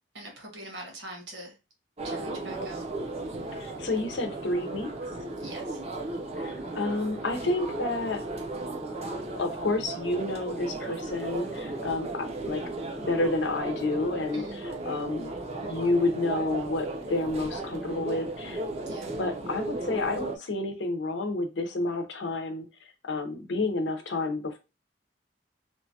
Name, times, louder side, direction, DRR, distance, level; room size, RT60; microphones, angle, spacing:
voice 1, 0.1-1.5 2.0-2.9 5.4-5.8 14.3-14.7 18.9-19.2, right 1 dB, 80° right, 1 dB, 1.3 m, -42 dB
sound 1, 2.0-20.4, right 2 dB, 35° right, 0.5 m, -35 dB
voice 2, 3.5-4.9 6.4-8.2 9.4-12.6 13.0-15.3 15.6-18.6 19.2-22.7 23.0-24.6, left 2 dB, 80° left, 6 dB, 0.6 m, -30 dB
2.9 x 2.3 x 2.7 m, 0.28 s
head